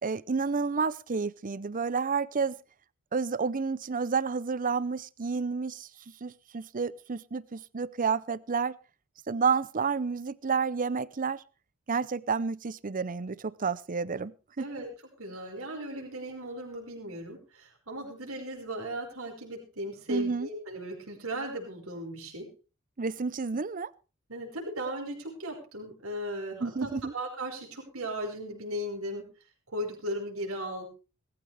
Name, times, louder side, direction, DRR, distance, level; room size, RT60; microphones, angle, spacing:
voice 1, 0.0-2.6 3.1-5.9 6.2-8.7 9.3-11.4 11.9-14.3 14.6-14.7 20.1-20.5 23.0-23.9 26.6-27.1, right 5 dB, 40° right, 0.6 m, -30 dB
voice 2, 14.6-14.9 15.2-22.5 24.3-29.3 29.7-30.8, right 1 dB, 70° right, 5.4 m, -37 dB
19.0 x 15.0 x 3.5 m
head